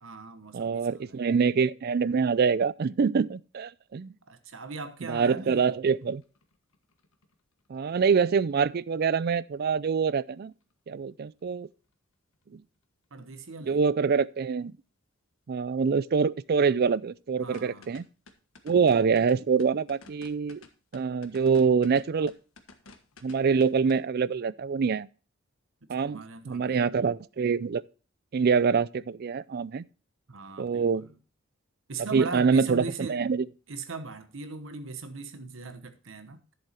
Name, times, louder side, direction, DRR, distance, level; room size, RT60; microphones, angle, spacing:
voice 1, 0.0-1.1 4.3-5.7 13.1-13.8 17.4-18.0 26.0-26.8 30.3-31.2 31.9-33.2 33.7-36.4, right 3 dB, 65° right, 1.1 m, -39 dB
voice 2, 0.5-4.1 5.0-6.2 7.7-10.5 10.9-11.7 12.5-12.6 13.7-14.7 15.5-18.0 18.6-20.6 20.9-22.3 23.2-25.1 25.9-27.8 28.3-29.8 30.6-31.1 32.0-33.5, right 5 dB, 50° right, 0.4 m, -25 dB
sound 1, 5.9-8.8 9.1-10.0 10.3-10.4 10.6-10.9 11.5-11.7 11.9-12.0 12.4-12.5 13.7-13.8 17.4-24.0, left 3 dB, 90° left, 1.4 m, -53 dB
11.0 x 7.1 x 4.2 m
head